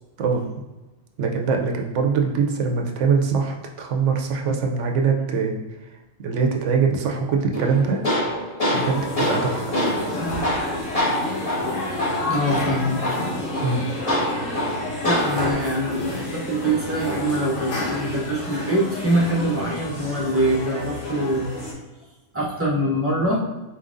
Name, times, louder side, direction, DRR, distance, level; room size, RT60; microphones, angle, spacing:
voice 1, 1.2-5.6 6.2-8.0 8.7-9.8 13.6-13.9, right 5 dB, 70° right, 2 dB, 0.9 m, -22 dB
Tools, 7.5-15.5, left 1 dB, 30° left, 1.2 m, -26 dB
sound 1, 8.7-21.7, left 2 dB, 70° left, 1.3 m, -30 dB
voice 2, 12.3-13.2 15.0-21.5 22.3-23.4, right 1 dB, 15° right, -4 dB, 0.7 m, -24 dB
4.3 x 3.7 x 2.5 m, 1.1 s
omnidirectional pair, 1.4 m